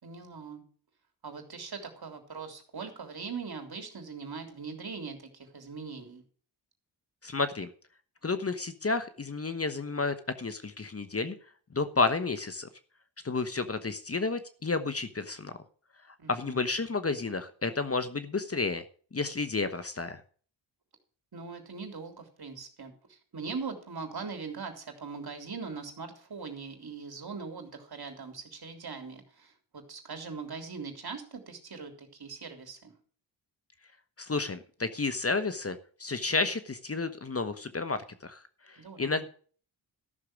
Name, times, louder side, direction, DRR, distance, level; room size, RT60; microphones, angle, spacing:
voice 1, 0.0-0.6 1.2-6.2 16.2-16.6 21.3-32.9 38.8-39.2, right 5 dB, 55° right, 5 dB, 3.4 m, -41 dB
voice 2, 7.2-7.7 8.2-11.3 11.7-12.7 13.2-15.6 16.3-18.8 19.1-20.2 34.2-38.4 38.7-39.3, left 3 dB, 30° left, 11 dB, 1.1 m, -31 dB
13.5 x 6.6 x 6.4 m, 0.44 s
cardioid pair, 60°, 46 cm